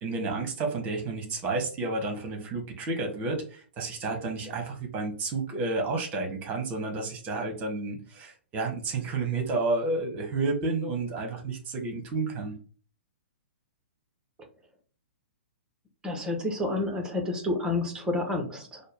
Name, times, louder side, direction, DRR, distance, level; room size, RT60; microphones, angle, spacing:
voice 1, 0.0-12.5, right 3 dB, 25° right, 3 dB, 1.2 m, -31 dB
voice 2, 16.0-18.8, left 2 dB, 10° right, 3 dB, 0.9 m, -29 dB
4.4 x 2.1 x 3.3 m, 0.40 s
figure-of-eight pair, 115°, 7 cm